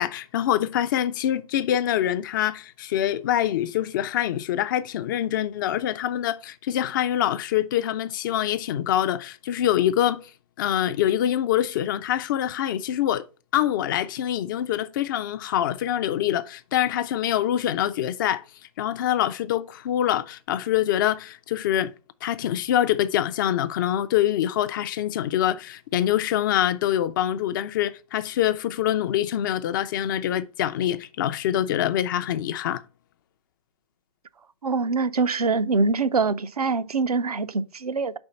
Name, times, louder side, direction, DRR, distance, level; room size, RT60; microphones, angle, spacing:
voice 1, 0.0-10.2 10.6-13.2 13.5-18.4 18.8-21.9 22.2-32.8, left 11 dB, 35° left, 0.4 m, -25 dB
voice 2, 34.6-38.1, right 4 dB, 90° right, 0.6 m, -24 dB
4.9 x 4.4 x 5.7 m
hypercardioid pair, 130°, 19 cm